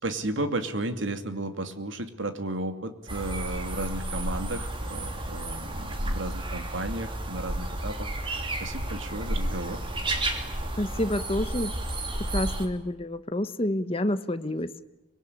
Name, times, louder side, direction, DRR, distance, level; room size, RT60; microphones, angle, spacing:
voice 1, 0.0-9.8, right 2 dB, 80° right, 8 dB, 2.6 m, -34 dB
sound 1, 3.1-12.7, right 1 dB, 25° right, 2.8 m, -32 dB
voice 2, 10.8-11.7 12.3-14.7, left 1 dB, 30° left, 12 dB, 1.0 m, -28 dB
25.5 x 21.0 x 10.0 m, 0.99 s
head